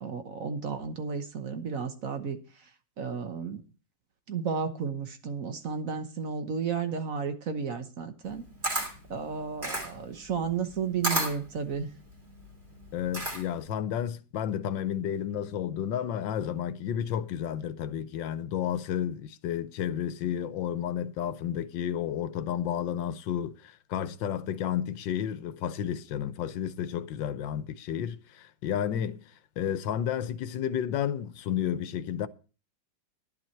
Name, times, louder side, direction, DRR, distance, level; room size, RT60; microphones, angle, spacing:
voice 1, 0.0-2.4 3.0-3.6 4.3-8.4 9.1-11.9, right 6 dB, 50° right, 1.4 m, -33 dB
Camera, 8.2-13.7, right 1 dB, 35° right, 3.4 m, -33 dB
voice 2, 12.9-29.2 29.6-32.3, left 9 dB, 85° left, 1.5 m, -31 dB
11.5 x 10.5 x 4.4 m
omnidirectional pair, 2.0 m